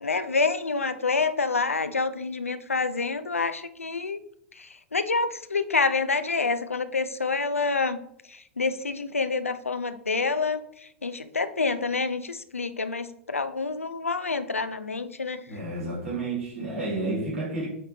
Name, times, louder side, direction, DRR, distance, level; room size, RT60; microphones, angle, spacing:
voice 1, 0.0-4.2 4.6-8.0 8.3-10.6 11.0-15.4, left 4 dB, 90° left, 11 dB, 0.5 m, -27 dB
voice 2, 15.5-17.7, right 2 dB, 75° right, -7 dB, 2.6 m, -30 dB
8.5 x 3.6 x 3.3 m, 0.72 s
figure-of-eight pair, 95°, 7 cm